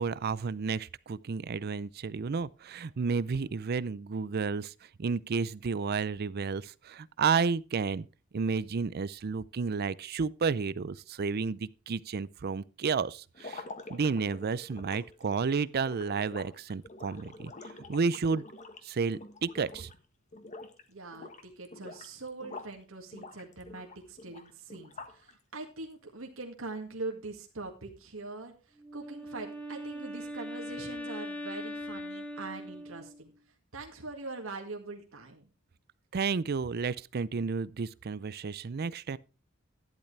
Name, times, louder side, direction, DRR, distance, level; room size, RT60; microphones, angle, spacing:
voice 1, 0.0-4.7 5.0-8.1 8.3-13.6 13.9-17.5 17.9-18.4 18.8-19.9 36.1-39.2, right 5 dB, 50° right, 0.5 m, -31 dB
sound 1, 13.3-20.0 20.3-20.8 21.1-22.8 23.1-25.3, left 3 dB, 35° left, 1.3 m, -47 dB
voice 2, 20.9-33.3 33.7-35.5, right 3 dB, 90° right, 2.0 m, -43 dB
Wind instrument woodwind instrument, 28.8-33.3, equal, 5° left, 1.7 m, -40 dB
12.0 x 10.5 x 3.3 m
head